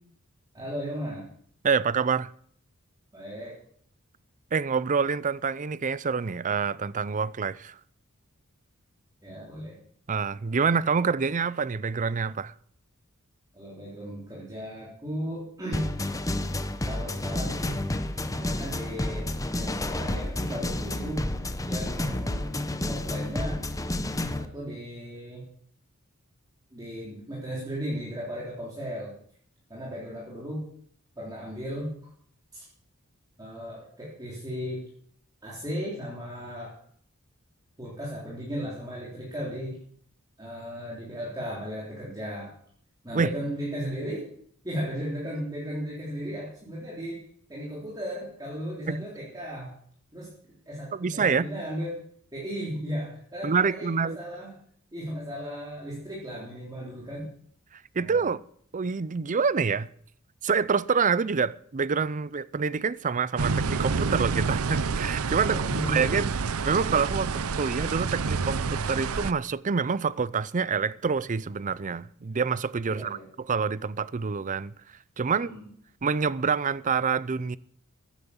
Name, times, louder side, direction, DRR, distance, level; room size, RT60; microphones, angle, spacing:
voice 1, 0.5-1.3 3.1-3.6 9.2-9.8 13.5-15.9 16.9-17.8 18.3-21.3 21.6-22.6 22.9-23.6 24.4-25.4 26.7-29.1 29.7-30.6 31.2-31.9 32.5-32.6 33.4-34.8 35.4-36.7 37.8-39.8 40.4-42.5 43.0-44.3 44.6-47.2 47.5-49.7 50.1-50.3 50.7-52.0 52.3-54.6 54.9-57.3 57.9-58.3 65.4-66.1 72.9-73.3 75.2-75.6, equal, 20° right, 3.8 m, -35 dB
voice 2, 1.6-2.3 4.5-7.8 10.1-12.5 43.1-43.4 48.9-49.0 50.9-51.5 53.4-54.2 57.7-58.4 58.7-59.9 60.4-65.6 65.9-66.3 66.6-73.2 73.5-74.7 75.2-75.5 76.0-77.6, right 5 dB, 35° right, 0.5 m, -27 dB
sound 1, 15.7-24.5, left 1 dB, 15° left, 0.9 m, -30 dB
sound 2, 63.4-69.3, right 4 dB, 80° right, 0.7 m, -28 dB
15.0 x 10.0 x 7.2 m
head